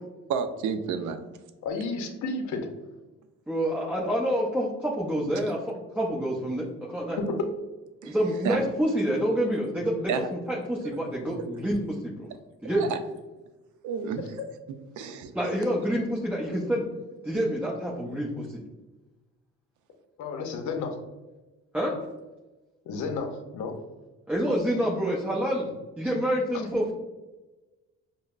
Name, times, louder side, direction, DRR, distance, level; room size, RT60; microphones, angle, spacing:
voice 1, 0.3-1.2 8.0-8.2 8.4-8.6 10.1-10.3 10.8-11.0 12.6-13.0 13.8-14.3 15.0-15.3, right 6 dB, 75° right, 9 dB, 0.5 m, -30 dB
voice 2, 1.6-2.7 7.2-7.4 20.2-21.0 22.9-23.7, left 3 dB, 75° left, 4 dB, 0.6 m, -31 dB
voice 3, 3.5-5.6 5.9-7.2 8.0-12.3 12.6-12.9 15.3-16.8 17.2-18.6 21.7-21.9 24.3-25.7 26.0-26.9, equal, 5° right, -5 dB, 0.6 m, -27 dB
5.2 x 2.1 x 2.4 m, 1.1 s
cardioid pair, 90°, 30 cm